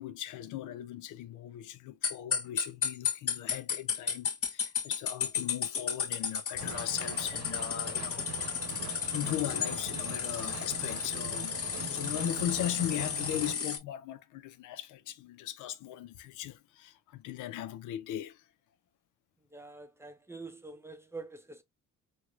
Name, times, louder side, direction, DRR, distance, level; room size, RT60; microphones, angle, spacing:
voice 1, 0.0-8.3 8.7-18.4, left 12 dB, 85° left, 0.5 m, -38 dB
sound 1, 2.0-13.8, left 7 dB, 50° left, 0.9 m, -33 dB
sound 2, 6.6-13.5, right 7 dB, 65° right, 1.0 m, -43 dB
voice 2, 19.5-21.6, right 3 dB, 10° right, 0.6 m, -46 dB
4.6 x 2.2 x 2.4 m
cardioid pair, 90°, 30 cm